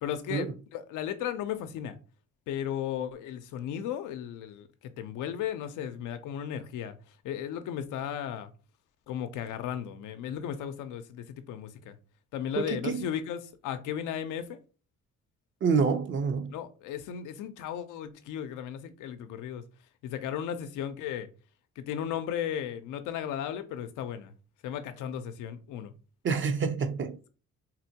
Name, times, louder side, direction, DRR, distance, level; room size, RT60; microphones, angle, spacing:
voice 1, 0.0-2.0 2.5-7.0 7.2-8.5 9.1-12.0 12.3-14.6 16.5-19.6 20.0-21.3 21.8-24.3 24.6-25.9, left 9 dB, 85° left, 0.5 m, -35 dB
voice 2, 12.6-13.1 15.6-16.5 26.2-27.2, right 5 dB, 40° right, 0.6 m, -27 dB
3.9 x 2.1 x 2.8 m
cardioid pair, 90°, 30 cm